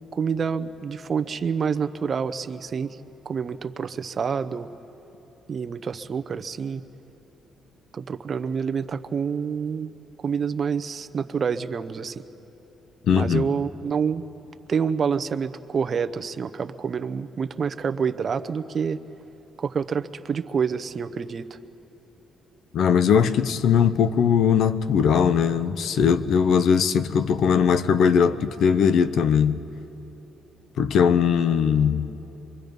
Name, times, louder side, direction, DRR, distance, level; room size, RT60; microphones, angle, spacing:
voice 1, 0.1-3.0 3.2-4.7 5.5-6.8 7.9-9.9 10.2-12.2 13.1-14.2 14.7-19.0 19.6-21.6, right 6 dB, 45° right, 11 dB, 0.8 m, -27 dB
voice 2, 13.1-13.5 22.7-29.6 30.8-32.1, left 7 dB, 70° left, 14 dB, 0.7 m, -20 dB
25.0 x 23.5 x 5.4 m, 3.0 s
cardioid pair, 90°, 0 cm